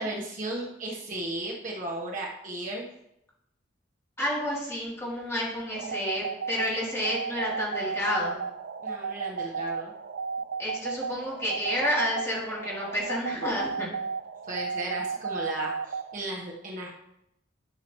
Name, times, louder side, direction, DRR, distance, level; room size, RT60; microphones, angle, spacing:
voice 1, 0.0-2.8 8.8-9.9 14.5-16.9, right 1 dB, 45° right, -2 dB, 1.2 m, -35 dB
voice 2, 4.2-8.4 10.6-13.9, left 1 dB, 15° left, -6 dB, 3.1 m, -30 dB
sound 1, 5.7-16.2, right 5 dB, 65° right, 0.5 m, -34 dB
12.0 x 6.7 x 3.1 m, 0.82 s
head